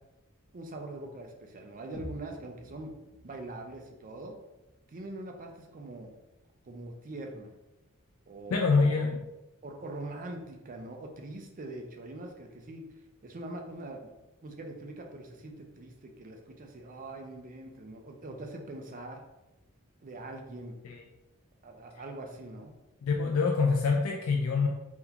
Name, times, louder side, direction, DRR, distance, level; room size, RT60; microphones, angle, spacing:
voice 1, 0.5-2.9 3.2-4.3 4.9-6.1 6.6-7.5 8.3-9.1 9.6-12.8 13.2-14.0 14.4-19.2 20.0-20.7 21.6-22.7, right 2 dB, 40° right, 3 dB, 0.5 m, -43 dB
sound 1, 1.9-5.9, equal, 55° left, 1.1 m, -50 dB
voice 2, 8.5-9.2 20.8-21.0 23.0-24.7, left 4 dB, 75° left, 1 dB, 0.4 m, -25 dB
3.5 x 2.3 x 2.8 m, 0.98 s
head